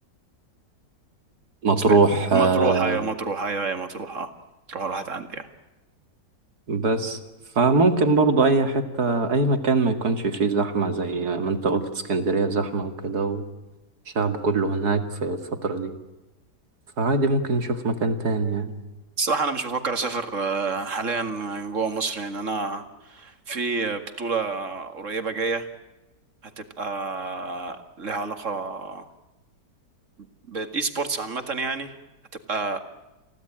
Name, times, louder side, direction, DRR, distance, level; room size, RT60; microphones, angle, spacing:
voice 1, 1.6-3.0 6.7-7.2 7.6-13.4 14.1-16.0 17.0-18.7, right 3 dB, 65° right, 8 dB, 2.8 m, -22 dB
voice 2, 2.3-4.3 4.7-5.5 19.2-25.7 26.6-29.1 30.5-32.0 32.5-32.8, right 4 dB, 45° right, 8 dB, 2.4 m, -28 dB
29.5 x 16.5 x 8.9 m, 1.1 s
omnidirectional pair, 1.8 m